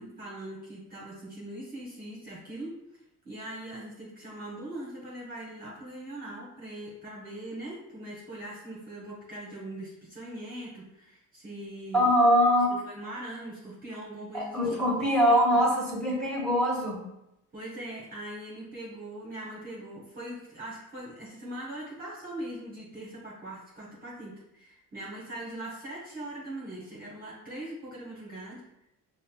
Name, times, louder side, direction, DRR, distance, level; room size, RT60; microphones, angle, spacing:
voice 1, 0.0-2.7 3.2-12.1 12.7-14.8 17.5-28.6, right 1 dB, 25° right, -5 dB, 1.0 m, -41 dB
voice 2, 11.9-12.7 14.3-17.1, equal, ahead, -3 dB, 1.4 m, -23 dB
5.3 x 2.1 x 2.3 m, 0.85 s
cardioid pair, 90°, 35 cm